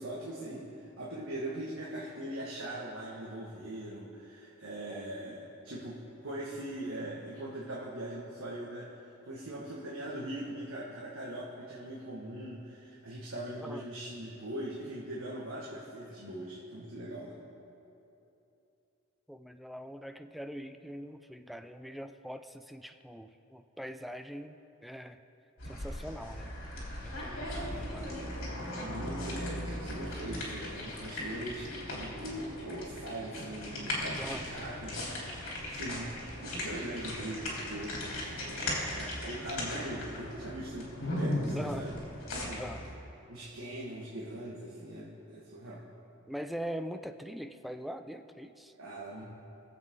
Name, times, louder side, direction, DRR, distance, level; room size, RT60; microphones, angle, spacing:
voice 1, 0.0-17.3 27.5-27.9 28.7-35.0 35.7-36.1 36.4-42.0 42.3-42.7 43.3-45.8 48.8-49.2, right 1 dB, 80° right, -6 dB, 1.6 m, -41 dB
voice 2, 19.3-25.2 25.7-26.5 27.0-28.2 34.1-34.5 41.5-41.9 42.5-42.8 46.3-48.7, equal, ahead, 8 dB, 0.3 m, -42 dB
sound 1, 25.6-42.9, left 1 dB, 70° left, 3.1 m, -38 dB
21.0 x 7.7 x 3.7 m, 2.8 s
head